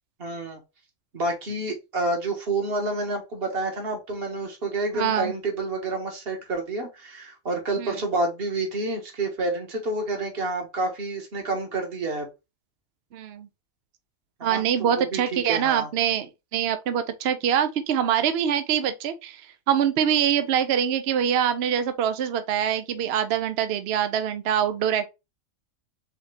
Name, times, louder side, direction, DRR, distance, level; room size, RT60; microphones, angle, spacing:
voice 1, 0.2-0.6 1.1-12.3 14.4-15.9, right 2 dB, 45° right, 1.5 m, -29 dB
voice 2, 4.9-5.3 7.8-8.0 13.1-13.5 14.4-25.1, right 9 dB, 65° right, 0.7 m, -24 dB
4.3 x 3.6 x 3.2 m
omnidirectional pair, 1.4 m